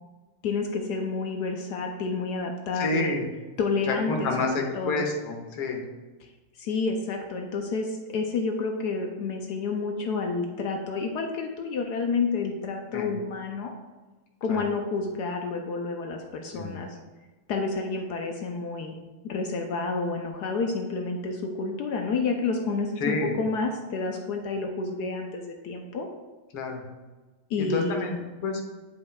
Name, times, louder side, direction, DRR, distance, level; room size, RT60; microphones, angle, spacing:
voice 1, 0.4-3.2 3.6-4.5 4.7-5.0 6.6-13.7 14.4-17.0 17.5-19.0 19.2-26.1 27.5-28.0, left 4 dB, 75° left, 3 dB, 0.9 m, -29 dB
voice 2, 2.8-3.3 3.9-5.8 12.9-13.1 14.5-14.6 16.5-16.8 23.0-23.3 26.5-26.8 27.6-28.6, left 3 dB, 90° left, 2 dB, 1.9 m, -29 dB
9.8 x 5.3 x 2.3 m, 1.2 s
omnidirectional pair, 2.3 m